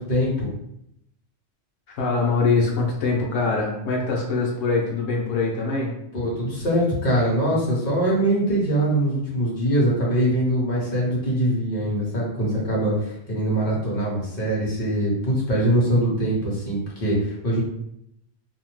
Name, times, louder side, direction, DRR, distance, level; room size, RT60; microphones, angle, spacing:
voice 1, 0.1-0.5 6.1-17.6, right 1 dB, 50° left, -5 dB, 1.1 m, -23 dB
voice 2, 1.9-5.9, left 4 dB, 90° left, -2 dB, 1.0 m, -23 dB
2.7 x 2.0 x 3.0 m, 0.77 s
omnidirectional pair, 1.2 m